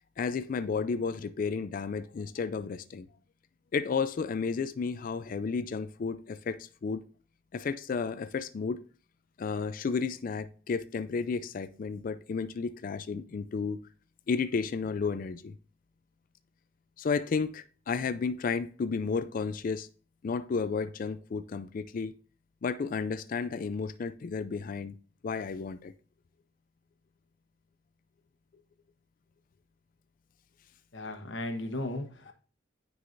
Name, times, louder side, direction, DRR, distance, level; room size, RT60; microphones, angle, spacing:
voice 1, 0.2-3.1 3.7-7.0 7.5-8.8 9.4-13.8 14.3-15.5 17.0-19.9 20.2-22.1 22.6-24.9 25.2-25.9 32.3-32.4, left 5 dB, 45° left, 0.4 m, -32 dB
voice 2, 30.9-32.3, left 1 dB, 70° left, 1.0 m, -36 dB
9.4 x 4.7 x 2.5 m
head